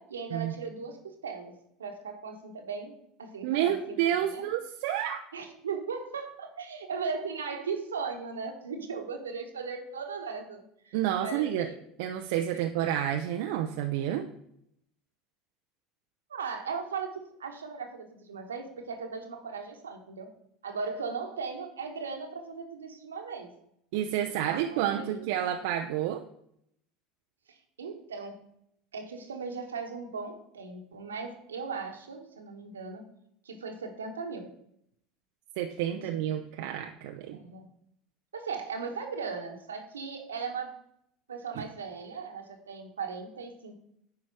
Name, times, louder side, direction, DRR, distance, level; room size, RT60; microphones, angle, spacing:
voice 1, 0.0-1.5 1.8-4.4 5.3-11.8 16.3-20.3 20.6-23.5 24.2-25.4 27.8-28.4 28.9-33.0 33.4-34.5 35.9-36.1 37.3-37.7 38.3-40.7 41.3-43.7, right 5 dB, 85° right, 5 dB, 1.3 m, -38 dB
voice 2, 3.4-5.2 10.9-11.7 12.0-14.3 23.9-26.2 35.6-37.4 41.6-41.7, right 11 dB, 65° right, 5 dB, 0.6 m, -29 dB
9.5 x 4.9 x 4.7 m, 0.72 s
hypercardioid pair, 75°, 0 cm